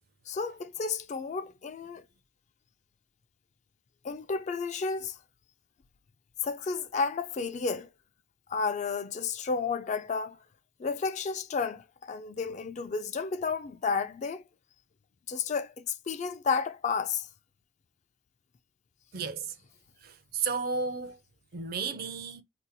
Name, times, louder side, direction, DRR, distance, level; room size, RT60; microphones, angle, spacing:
voice 1, 0.3-2.0 4.0-5.2 6.4-7.9 8.5-10.4 10.8-14.4 15.3-17.3, left 5 dB, 35° left, 0.3 m, -32 dB
voice 2, 19.1-19.5 20.0-21.2 21.5-22.4, right 5 dB, 50° right, 0.4 m, -33 dB
2.8 x 2.2 x 3.9 m
head